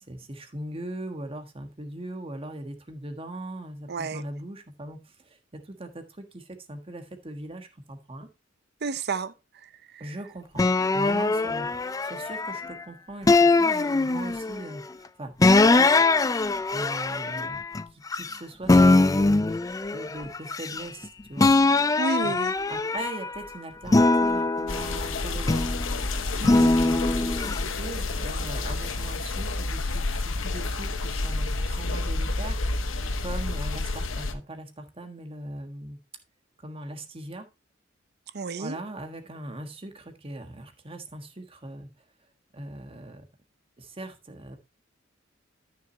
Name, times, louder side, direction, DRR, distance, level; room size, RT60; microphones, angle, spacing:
voice 1, 0.1-8.3 10.0-10.6 10.9-16.0 16.7-17.6 18.1-21.5 21.8-22.0 22.2-22.4 22.7-25.6 26.9-32.9 33.2-36.0 36.6-37.5 38.6-41.9 42.5-43.2 43.8-44.6, right 1 dB, 30° right, 1.5 m, -40 dB
voice 2, 3.9-4.2 8.8-10.2 22.0-22.5 26.4-26.8 38.3-38.8, right 3 dB, 55° right, 0.7 m, -32 dB
sound 1, 10.6-12.7 13.3-14.6 15.4-18.4 18.7-21.0 21.4-23.4 23.9-25.8 26.4-27.6, left 3 dB, 20° left, 0.4 m, -22 dB
sound 2, 24.7-34.3, left 2 dB, 85° left, 1.0 m, -29 dB
13.0 x 6.5 x 2.8 m
head